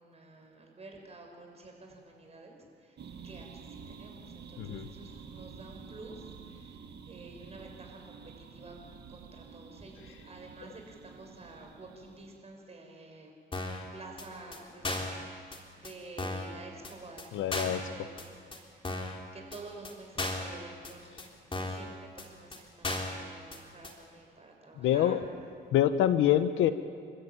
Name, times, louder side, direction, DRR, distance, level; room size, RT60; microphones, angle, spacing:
voice 1, 0.0-3.0 3.2-8.8 9.1-13.3 13.9-18.2 18.6-18.8 19.3-21.1 21.6-25.2, right 2 dB, 30° right, 1 dB, 6.2 m, -50 dB
sound 1, 3.0-12.4, right 6 dB, 60° right, 1.9 m, -49 dB
voice 2, 4.6-4.9 17.3-17.8 24.8-25.2 25.7-26.7, left 11 dB, 85° left, 11 dB, 1.1 m, -25 dB
sound 2, 13.5-13.8 14.2-14.3 14.5-14.6 14.8-15.2 15.5-15.6 15.8-15.9 16.2-16.5 16.8-16.9 17.2-17.3 17.5-17.8 18.2-18.3 18.5-18.6 18.8-19.2 19.5-19.6 19.8-19.9 20.2-20.5 20.8-20.9 21.2-21.3 21.5-21.8 22.2-22.3 22.5-22.6 22.8-23.2 23.5-23.6 23.8-23.9, left 2 dB, 25° left, 3.8 m, -35 dB
29.0 x 13.0 x 9.3 m, 2.2 s
cardioid pair, 90°, 20 cm